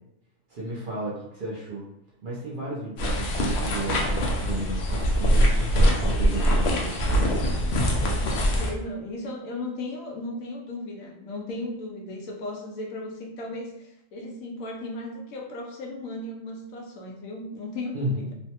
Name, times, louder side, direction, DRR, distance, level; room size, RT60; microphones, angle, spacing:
voice 1, 0.5-1.8 2.2-7.5 17.9-18.2, right 1 dB, 55° right, -5 dB, 0.6 m, -33 dB
sound 1, 3.0-8.7, equal, 65° left, 0.7 m, -23 dB
voice 2, 8.0-18.3, left 2 dB, 90° left, 0 dB, 1.1 m, -36 dB
3.1 x 2.1 x 2.8 m, 0.83 s
omnidirectional pair, 1.4 m